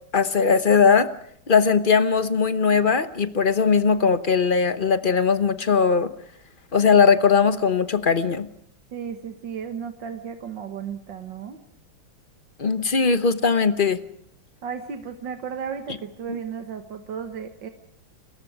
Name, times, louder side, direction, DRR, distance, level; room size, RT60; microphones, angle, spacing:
voice 1, 0.1-1.1 1.5-6.1 6.7-8.5 12.6-14.0, left 5 dB, 35° left, 12 dB, 0.8 m, -19 dB
voice 2, 8.9-11.6 14.6-17.7, right 7 dB, 65° right, 7 dB, 2.0 m, -34 dB
29.5 x 22.0 x 5.0 m, 0.66 s
omnidirectional pair, 2.2 m